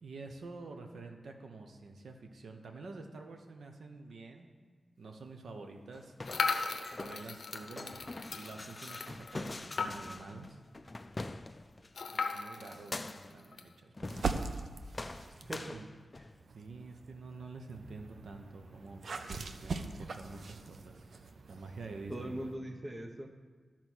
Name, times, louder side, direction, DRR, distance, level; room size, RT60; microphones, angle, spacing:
voice 1, 0.0-4.5 5.0-6.1 7.0-10.6 12.1-14.2 15.7-15.9 16.5-19.0 19.3-21.0 21.5-22.5, right 3 dB, 85° right, 4 dB, 0.8 m, -48 dB
sound 1, 5.9-11.9 12.6-13.4 14.0-14.7 14.9-16.4, left 2 dB, 25° left, 0.3 m, -44 dB
sound 2, 6.2-10.3 10.7-10.8 11.0-11.1 11.9-13.7, left 4 dB, 70° left, 0.6 m, -37 dB
sound 3, 14.1-15.7 16.3-22.5, right 4 dB, 65° right, 0.5 m, -42 dB
voice 2, 15.3-15.8 22.1-23.3, right 1 dB, 20° right, 5 dB, 0.7 m, -41 dB
12.5 x 4.3 x 6.2 m, 1.5 s
wide cardioid pair, 145°, 0 cm